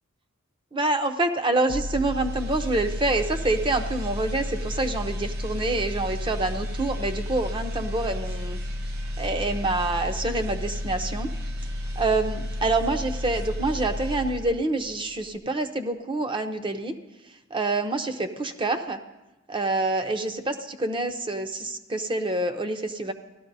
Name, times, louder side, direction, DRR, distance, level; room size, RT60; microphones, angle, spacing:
voice 1, 0.7-8.6 9.2-11.3 12.0-16.9 17.5-19.0 19.5-23.1, right 2 dB, 25° right, 6 dB, 0.7 m, -27 dB
sound 1, 1.7-14.8 15.1-15.4, left 1 dB, 55° right, 0.9 m, -32 dB
17.0 x 13.0 x 2.7 m, 1.1 s
head